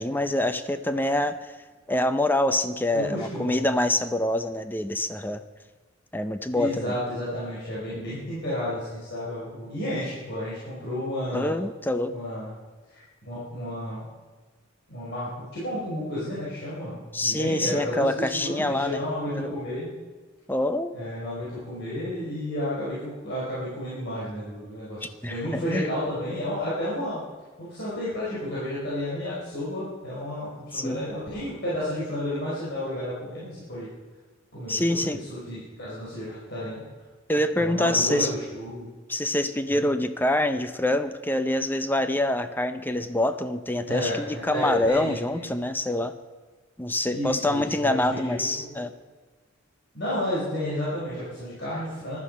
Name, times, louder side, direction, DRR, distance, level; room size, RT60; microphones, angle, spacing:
voice 1, 0.0-1.5 1.9-5.4 6.1-6.9 11.3-12.1 17.1-19.0 19.3-19.5 20.5-20.9 25.0-25.9 30.7-31.0 34.7-35.2 37.3-38.3 39.1-46.1 46.8-48.9, left 1 dB, 10° left, 10 dB, 0.6 m, -26 dB
voice 2, 2.9-3.7 6.5-11.5 12.1-12.5 12.9-14.1 14.9-19.9 20.9-27.2 27.6-33.9 34.5-34.8 35.1-36.8 37.6-38.9 39.7-39.8 43.9-45.5 47.1-48.7 49.9-52.2, left 1 dB, 55° left, -8 dB, 4.8 m, -32 dB
14.5 x 12.0 x 5.3 m, 1.4 s
head